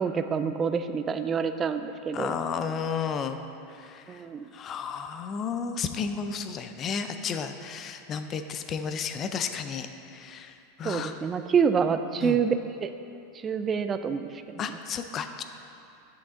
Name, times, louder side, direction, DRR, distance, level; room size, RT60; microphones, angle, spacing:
voice 1, 0.0-2.4 4.1-4.5 10.8-12.9 13.4-14.6, right 6 dB, 25° right, 9 dB, 0.3 m, -27 dB
voice 2, 2.1-3.4 3.7-4.2 4.5-11.1 12.2-12.4 14.6-15.4, left 6 dB, 35° left, 8 dB, 0.4 m, -33 dB
7.7 x 5.9 x 3.7 m, 2.7 s
hypercardioid pair, 110°, 0 cm